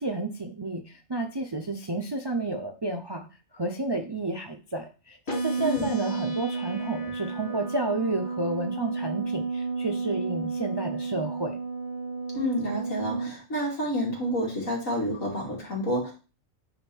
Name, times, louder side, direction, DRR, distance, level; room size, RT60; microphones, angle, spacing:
voice 1, 0.0-3.3 3.5-11.6, right 2 dB, 30° right, 5 dB, 0.4 m, -31 dB
sound 1, 5.3-13.3, right 4 dB, 50° left, 1.8 m, -32 dB
voice 2, 5.6-5.9 12.3-16.1, equal, 85° left, -3 dB, 2.9 m, -29 dB
8.9 x 3.6 x 4.4 m, 0.33 s
omnidirectional pair, 1.4 m